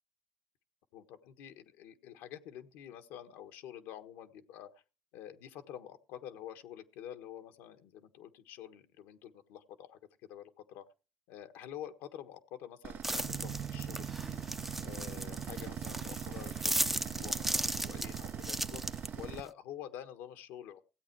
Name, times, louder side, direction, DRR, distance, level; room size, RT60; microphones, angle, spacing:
voice 1, 0.9-4.8 5.1-10.0 10.3-10.8 11.3-14.4 14.8-18.8 19.2-20.8, left 10 dB, 85° left, 8 dB, 1.4 m, -48 dB
sound 1, 12.8-19.4, right 9 dB, 60° right, 0.8 m, -41 dB
sound 2, 13.0-19.5, right 1 dB, 5° right, 0.6 m, -37 dB
16.5 x 8.6 x 4.7 m, 0.33 s
supercardioid pair, 75°, 4 cm